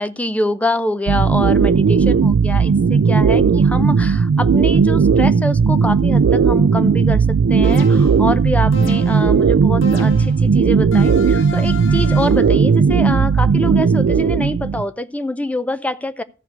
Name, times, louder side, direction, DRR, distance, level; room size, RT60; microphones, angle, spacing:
voice 1, 0.0-16.2, left 1 dB, 5° left, 0.5 m, -25 dB
sound 1, 1.1-14.8, right 5 dB, 75° right, 0.4 m, -15 dB
sound 2, 7.6-8.3 8.7-9.4 9.8-10.5 10.9-12.5, left 1 dB, 80° left, 1.6 m, -32 dB
14.0 x 4.8 x 6.0 m
head